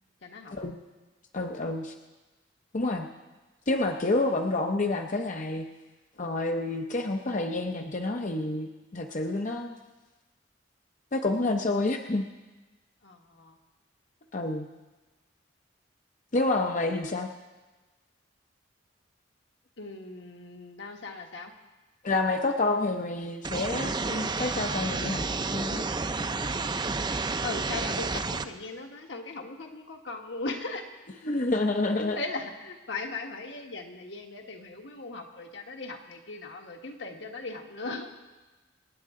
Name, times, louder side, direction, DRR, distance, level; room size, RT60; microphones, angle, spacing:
voice 1, 0.2-0.5 13.0-13.6 19.8-21.5 27.4-30.8 31.9-38.1, left 3 dB, 75° left, 3 dB, 1.5 m, -38 dB
voice 2, 1.3-1.9 2.7-3.1 3.7-5.7 6.2-9.7 11.1-12.2 14.3-14.7 16.3-17.3 22.0-25.9 31.3-32.2, left 2 dB, 45° left, 4 dB, 0.7 m, -28 dB
sound 1, 23.4-28.4, right 3 dB, 25° right, 0.5 m, -30 dB
27.0 x 9.2 x 3.7 m, 1.2 s
head